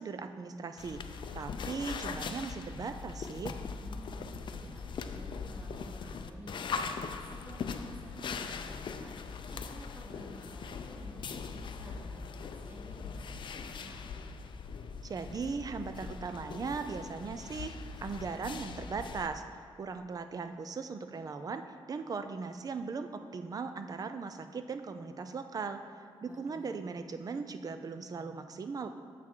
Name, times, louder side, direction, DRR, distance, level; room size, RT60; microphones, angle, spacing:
voice 1, 0.0-3.6 15.0-21.6 21.9-25.8 26.2-28.9, right 4 dB, 40° right, 9 dB, 0.4 m, -38 dB
sound 1, 0.8-19.3, left 5 dB, 60° left, 0.4 m, -41 dB
voice 2, 3.8-14.1 26.2-26.9, right 1 dB, 20° right, -2 dB, 0.9 m, -52 dB
7.4 x 6.0 x 4.5 m, 2.4 s
wide cardioid pair, 120°, 9 cm